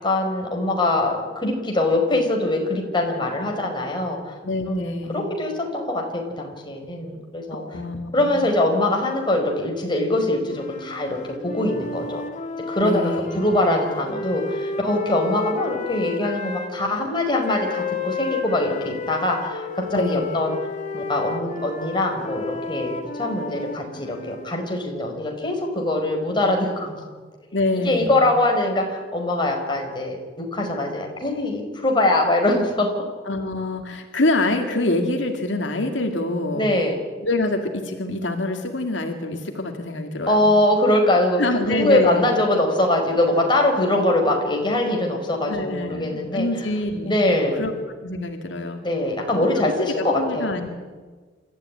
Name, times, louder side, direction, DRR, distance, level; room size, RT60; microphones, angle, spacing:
voice 1, 0.0-4.3 4.7-7.6 8.1-12.2 12.7-13.0 13.3-20.5 20.9-27.0 27.8-33.0 36.5-37.0 40.3-46.5 47.0-47.6 48.8-50.5, left 1 dB, 25° left, 1 dB, 5.0 m, -23 dB
voice 2, 4.4-5.3 7.5-8.4 12.8-13.6 19.9-20.3 27.5-28.2 33.3-36.6 37.2-40.5 41.4-42.3 45.5-47.2 47.5-47.7 48.0-48.8 49.4-49.5 49.8-50.7, left 2 dB, 80° left, 4 dB, 2.2 m, -25 dB
sound 1, 10.5-16.7 17.4-24.5, left 4 dB, 40° left, 2.3 m, -32 dB
27.5 x 14.0 x 9.8 m, 1.4 s
head